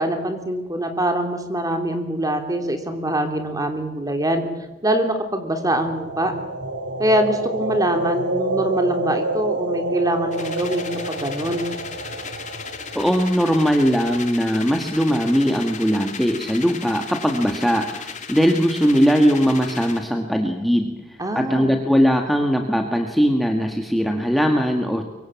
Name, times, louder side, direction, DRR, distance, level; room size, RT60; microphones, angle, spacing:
voice 1, 0.0-4.4 4.8-6.3 7.0-11.7 21.2-21.7, right 1 dB, 20° right, 6 dB, 3.1 m, -23 dB
sound 1, 5.7-13.7, right 2 dB, 85° right, 2.4 m, -28 dB
sound 2, 10.3-20.1, left 6 dB, 40° left, 2.3 m, -36 dB
voice 2, 12.9-25.0, equal, ahead, 3 dB, 1.6 m, -20 dB
24.0 x 24.0 x 7.4 m, 1.0 s
head